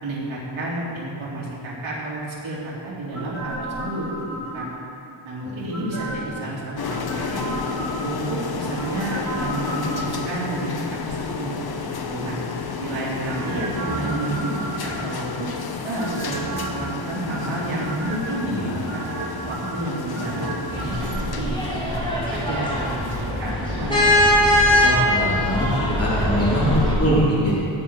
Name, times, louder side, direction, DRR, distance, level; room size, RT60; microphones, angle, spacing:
voice 1, 0.0-4.1 4.5-4.7 5.2-7.4 8.0-11.5 11.8-12.4 12.8-14.5 14.8-15.5 15.8-16.4 16.7-19.1 19.5-24.2, right 2 dB, 75° right, -7 dB, 3.4 m, -30 dB
sound 1, 3.1-5.0 5.7-6.4 6.9-8.3 8.7-10.4 13.2-15.4 16.0-16.9 17.3-18.4 18.8-21.2 21.5-21.6, right 2 dB, 35° right, 2.5 m, -32 dB
sound 2, 6.8-26.5, left 5 dB, 50° left, 0.9 m, -32 dB
voice 2, 18.5-18.8 24.8-25.7 26.0-27.5, equal, 30° left, -8 dB, 3.2 m, -23 dB
sound 3, 20.7-26.9, left 1 dB, 10° left, 3.2 m, -21 dB
16.5 x 8.3 x 4.6 m, 2.7 s
wide cardioid pair, 125°, 48 cm